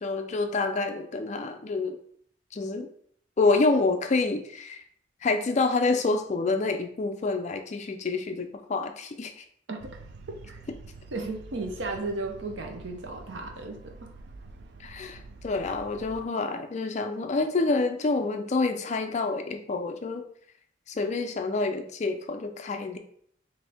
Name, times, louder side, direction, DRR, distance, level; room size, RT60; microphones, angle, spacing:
voice 1, 0.0-2.0 2.5-2.9 3.4-4.8 5.2-9.4 14.8-20.2 20.9-23.0, left 3 dB, 35° left, 6 dB, 0.4 m, -27 dB
sound 1, 9.8-16.2, right 3 dB, 60° right, 0.3 m, -47 dB
voice 2, 11.1-14.1, right 3 dB, 75° right, 3 dB, 0.7 m, -35 dB
4.1 x 2.6 x 3.4 m, 0.64 s
head